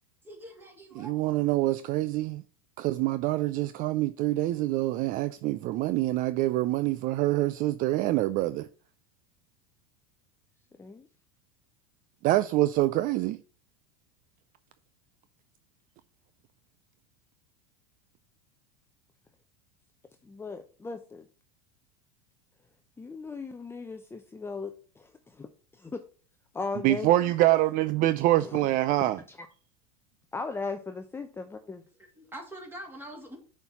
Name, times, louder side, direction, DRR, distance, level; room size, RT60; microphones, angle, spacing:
voice 1, 0.2-1.1 32.0-33.4, right 1 dB, 10° right, 2.7 m, -44 dB
voice 2, 1.0-2.4 2.8-8.7 12.2-13.4 26.8-29.2, right 16 dB, 45° right, 0.4 m, -25 dB
voice 3, 20.2-21.3 23.0-25.5 25.8-26.0 26.5-27.1 28.4-28.7 29.0-29.4 30.3-31.8, left 4 dB, 10° left, 0.7 m, -37 dB
6.8 x 4.5 x 5.7 m
hypercardioid pair, 95°, 19 cm